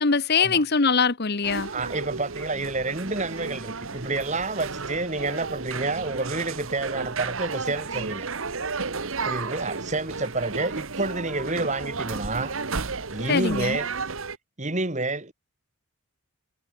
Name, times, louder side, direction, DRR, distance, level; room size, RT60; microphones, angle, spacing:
voice 1, 0.0-1.7 13.3-13.8, left 5 dB, 45° left, 1.1 m, -22 dB
sound 1, 1.4-14.4, right 4 dB, 65° right, 1.4 m, -33 dB
voice 2, 1.7-8.3 9.2-12.5 13.1-13.9 14.6-15.3, right 2 dB, 35° right, 3.0 m, -29 dB
head